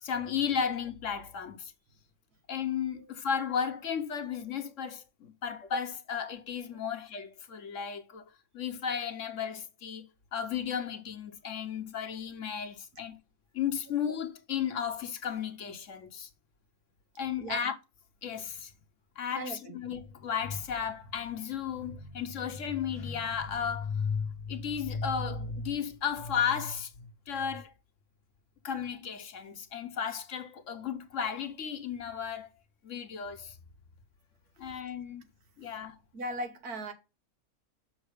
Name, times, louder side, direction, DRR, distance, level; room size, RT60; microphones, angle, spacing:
voice 1, 0.0-1.7 2.5-8.2 8.5-13.2 13.5-16.3 17.2-17.8 18.2-18.7 19.2-27.7 28.6-32.5 32.8-33.6 34.6-35.2 35.6-36.0, left 7 dB, 60° left, 1.2 m, -34 dB
voice 2, 19.3-19.8 36.1-36.9, right 1 dB, 85° right, 1.8 m, -37 dB
6.4 x 5.8 x 5.0 m
omnidirectional pair, 1.6 m